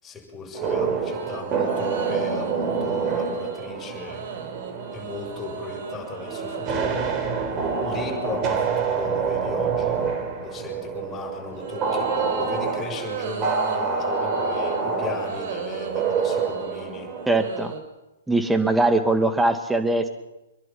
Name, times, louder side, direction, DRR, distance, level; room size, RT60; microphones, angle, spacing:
voice 1, 0.0-4.2 4.9-7.2 7.8-10.0 10.4-17.1, left 3 dB, 15° left, -1 dB, 7.0 m, -36 dB
sound 1, 0.5-17.4, right 5 dB, 25° right, 4.0 m, -27 dB
sound 2, 1.1-8.7 11.5-17.8, right 7 dB, 50° right, 4.5 m, -36 dB
voice 2, 17.3-17.7 18.3-20.1, right 2 dB, 5° right, 8 dB, 2.1 m, -21 dB
26.5 x 22.5 x 6.0 m, 0.99 s
figure-of-eight pair, 115°, 0 cm